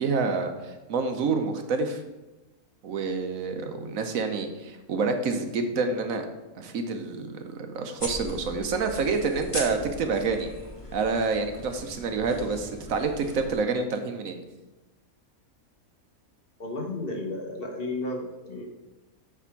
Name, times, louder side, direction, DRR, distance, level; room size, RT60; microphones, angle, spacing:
voice 1, 0.0-2.0 2.8-6.2 6.6-10.5 10.9-14.4, right 4 dB, 70° right, 6 dB, 1.2 m, -28 dB
sound 1, 8.0-13.5, left 1 dB, 20° left, 1.6 m, -39 dB
voice 2, 16.6-18.7, left 2 dB, 45° left, 0 dB, 1.3 m, -33 dB
8.3 x 3.5 x 5.8 m, 1.1 s
omnidirectional pair, 1.5 m